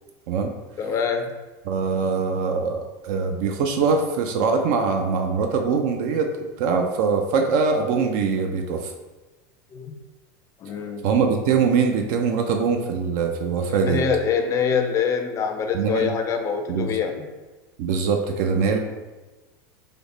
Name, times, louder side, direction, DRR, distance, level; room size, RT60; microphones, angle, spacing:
voice 1, 0.8-1.3 9.7-10.0 10.6-11.1 13.7-17.3, left 6 dB, 30° left, 5 dB, 0.4 m, -25 dB
voice 2, 1.7-6.3 6.6-8.9 11.0-14.1 15.7-16.1 16.7-17.0 17.8-18.8, right 5 dB, 65° right, 4 dB, 0.4 m, -22 dB
3.4 x 2.1 x 3.6 m, 1.2 s
supercardioid pair, 125°, 11 cm